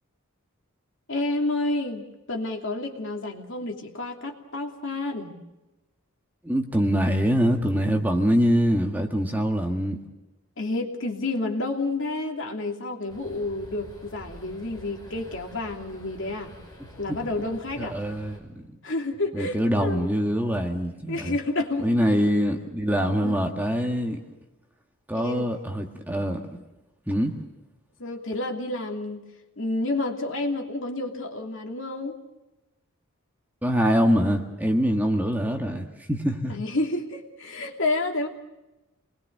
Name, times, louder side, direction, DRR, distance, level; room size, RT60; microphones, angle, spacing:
voice 1, 1.1-5.4 10.6-16.5 17.0-18.0 18.8-20.1 21.1-21.9 23.2-23.4 25.1-25.5 28.0-29.2 29.6-32.2 36.5-38.3, left 2 dB, 55° left, 3 dB, 2.9 m, -30 dB
voice 2, 6.4-10.0 17.1-17.2 17.8-18.7 19.3-21.4 21.8-24.2 25.1-26.6 27.1-27.4 33.6-36.6, equal, 10° right, 3 dB, 1.8 m, -24 dB
sound 1, 13.1-18.4, equal, 15° left, 5.9 m, -47 dB
27.5 x 21.0 x 6.7 m, 1.0 s
head